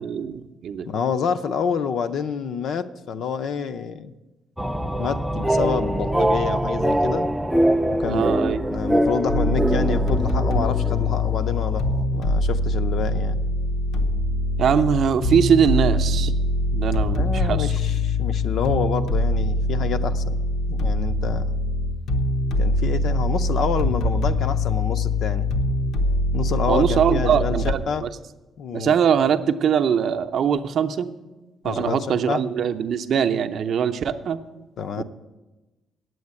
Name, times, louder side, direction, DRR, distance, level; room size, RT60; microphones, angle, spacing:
voice 1, 0.0-0.9 8.0-8.6 14.6-16.3 16.7-17.7 26.7-28.1 28.7-31.1 31.6-34.4 35.0-35.1, right 7 dB, 50° right, 6 dB, 0.6 m, -22 dB
voice 2, 0.8-4.1 5.0-7.3 8.0-8.3 8.6-11.8 12.1-13.4 17.1-20.4 20.7-21.6 22.6-25.5 26.3-28.0 28.6-28.9 31.6-32.0 32.3-32.4 34.8-35.0, left 6 dB, 55° left, 10 dB, 0.5 m, -28 dB
sound 1, 4.6-12.0, right 1 dB, 5° right, 0.3 m, -23 dB
sound 2, 9.3-27.7, left 1 dB, 85° left, 1.0 m, -23 dB
9.5 x 7.8 x 9.5 m, 1.1 s
cardioid pair, 175°, 0 cm